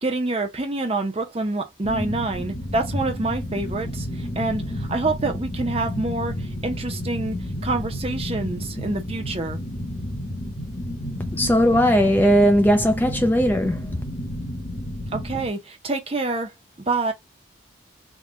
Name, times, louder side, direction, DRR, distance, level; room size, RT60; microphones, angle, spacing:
voice 1, 0.0-7.4 7.6-9.6 15.1-16.5 16.9-17.1, right 2 dB, 30° right, 0.7 m, -27 dB
sound 1, 1.8-15.5, equal, 35° left, 1.2 m, -31 dB
voice 2, 11.3-13.8, equal, 10° left, 0.4 m, -18 dB
3.7 x 2.3 x 3.6 m
head